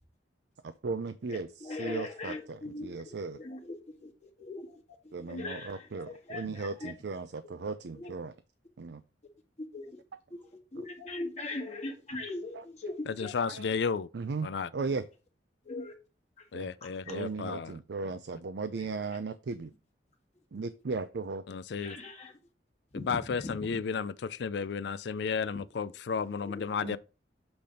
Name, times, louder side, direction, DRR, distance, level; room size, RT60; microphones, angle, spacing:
voice 1, 0.6-3.4 5.1-8.3 8.8-9.0 10.8-10.9 12.5-12.9 13.4-13.7 14.1-15.1 16.5-16.7 17.1-19.7 20.5-21.4 26.8-27.0, right 4 dB, 70° right, 0.5 m, -37 dB
voice 2, 1.3-6.9 8.0-8.1 9.6-10.0 10.3-10.4 10.7-13.4 15.7-15.9 16.8-17.2 21.8-22.3 22.9-23.8 25.5-25.6 26.4-26.7, left 2 dB, 40° left, 1.7 m, -41 dB
voice 3, 13.1-14.1 14.4-14.7 16.5-17.7 21.5-22.0 22.9-27.0, left 5 dB, 70° left, 0.4 m, -33 dB
7.9 x 3.4 x 5.2 m
head